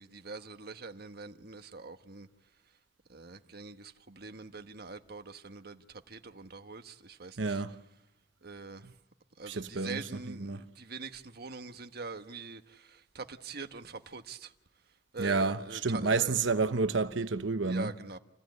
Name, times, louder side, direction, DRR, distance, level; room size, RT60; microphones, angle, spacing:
voice 1, 0.0-2.3 3.1-7.6 8.4-8.9 9.4-14.5 15.1-16.5 17.6-18.2, right 4 dB, 55° right, 1.4 m, -44 dB
voice 2, 7.4-7.7 8.8-8.9 9.5-10.6 15.2-17.9, right 4 dB, 70° right, 1.0 m, -30 dB
29.0 x 16.0 x 9.5 m
head